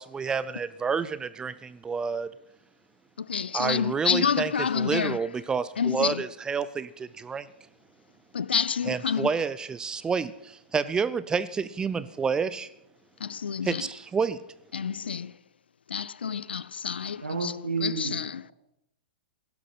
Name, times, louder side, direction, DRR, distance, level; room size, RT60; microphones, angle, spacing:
voice 1, 0.0-2.3 3.5-4.5 4.8-7.5 8.9-12.7 13.7-14.4, right 5 dB, 15° right, 0.5 m, -29 dB
voice 2, 3.2-5.5 5.8-6.3 8.3-9.5 12.0-12.1 13.2-13.9 14.7-15.4 15.9-18.5, left 7 dB, 70° left, 0.6 m, -29 dB
voice 3, 17.2-18.1, right 4 dB, 80° right, 2.2 m, -30 dB
16.0 x 12.0 x 5.8 m
figure-of-eight pair, 110°, 6 cm